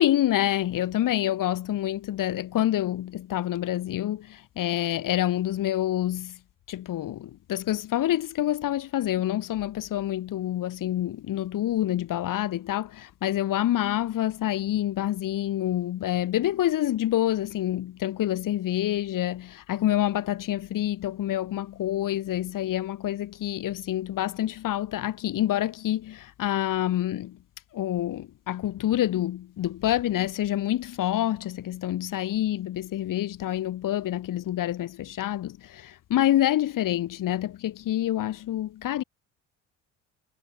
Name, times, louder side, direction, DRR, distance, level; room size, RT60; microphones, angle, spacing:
voice 1, 0.0-6.4 6.7-27.4 27.7-39.0, left 13 dB, 65° left, 7.5 m, -27 dB
supercardioid pair, 75°, 35 cm